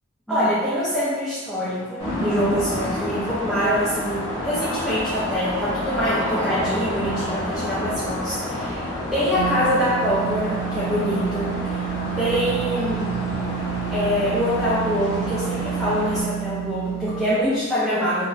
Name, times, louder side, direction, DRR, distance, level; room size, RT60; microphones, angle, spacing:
voice 1, 0.3-11.8 12.2-13.1 13.9-18.3, equal, ahead, -12 dB, 0.6 m, -24 dB
sound 1, 2.0-16.2, left 1 dB, 30° left, 1.4 m, -29 dB
sound 2, 9.4-17.4, right 14 dB, 85° right, 0.3 m, -30 dB
3.9 x 2.6 x 2.6 m, 1.3 s
head